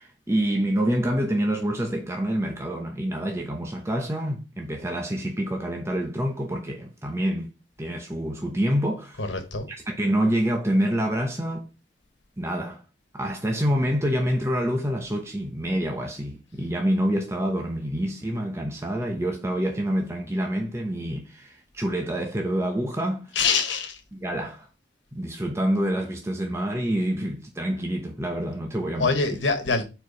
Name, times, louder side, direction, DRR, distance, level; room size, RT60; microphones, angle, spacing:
voice 1, 0.0-7.5 7.8-9.3 9.7-11.7 12.4-12.8 13.1-23.3 24.1-24.7 25.1-29.4, equal, 15° right, 0.9 m, -27 dB
voice 2, 9.2-9.7 23.3-24.0 29.0-29.8, left 4 dB, 90° left, 1.5 m, -24 dB
4.6 x 4.6 x 5.3 m
head